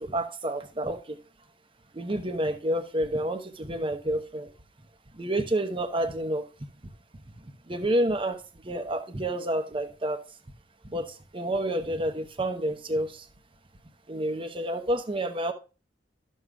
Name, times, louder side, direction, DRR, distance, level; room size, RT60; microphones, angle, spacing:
voice 1, 0.0-1.2 1.9-4.5 5.1-6.4 7.7-10.2 10.9-13.2 14.1-15.5, right 1 dB, 30° right, 0.9 m, -29 dB
12.5 x 6.4 x 2.4 m
head